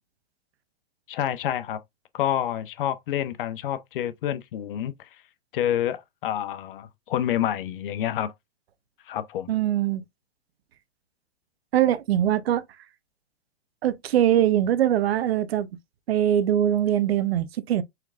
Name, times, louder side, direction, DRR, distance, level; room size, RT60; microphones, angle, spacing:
voice 1, 1.1-1.8 2.1-4.9 5.5-8.3 9.1-9.5, left 11 dB, 60° left, 0.7 m, -28 dB
voice 2, 9.5-10.0 11.7-12.6 13.8-15.7 16.1-17.8, right 11 dB, 75° right, 0.7 m, -22 dB
4.4 x 3.5 x 2.4 m
hypercardioid pair, 140°, 31 cm